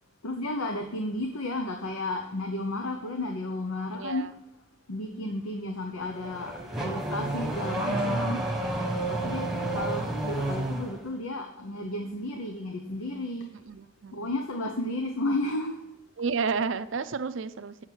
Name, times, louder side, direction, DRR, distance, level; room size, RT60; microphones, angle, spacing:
voice 1, 0.2-4.3 4.9-8.4 9.1-13.5 14.1-15.8, left 1 dB, 85° left, 0.9 m, -33 dB
voice 2, 3.9-4.3 8.7-9.1 9.4-9.9 13.6-14.3 16.2-17.9, right 5 dB, 60° right, 0.5 m, -32 dB
Car / Accelerating revving vroom, 6.0-11.0, right 1 dB, ahead, 1.2 m, -30 dB
8.7 x 6.5 x 4.5 m
head